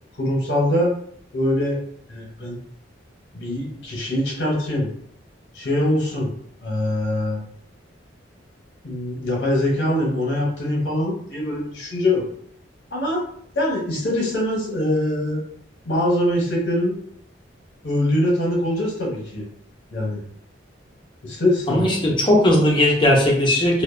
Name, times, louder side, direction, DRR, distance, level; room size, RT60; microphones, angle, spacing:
voice 1, 0.2-0.9 1.3-1.8 2.1-2.6 3.3-4.9 5.5-6.3 6.6-7.4 8.8-12.2 12.9-13.2 13.5-15.4 15.8-17.0 17.8-19.4 19.9-20.2 21.2-21.9, left 1 dB, 60° left, -3 dB, 0.8 m, -23 dB
voice 2, 21.7-23.8, left 1 dB, 25° left, -2 dB, 0.5 m, -17 dB
2.5 x 2.1 x 2.4 m, 0.64 s
head